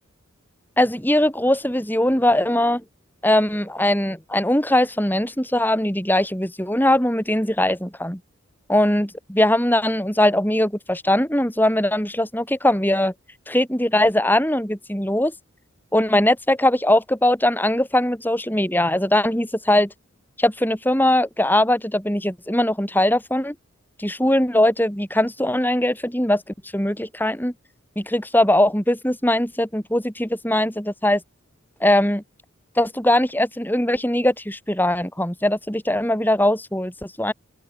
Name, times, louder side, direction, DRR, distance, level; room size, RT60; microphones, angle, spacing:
voice 1, 0.8-2.8 3.2-8.2 8.7-13.1 13.5-15.3 15.9-19.9 20.4-23.5 24.0-26.4 26.7-27.5 28.0-31.2 31.8-32.2 32.8-37.3, left 1 dB, 10° left, 7.3 m, -20 dB
open air
head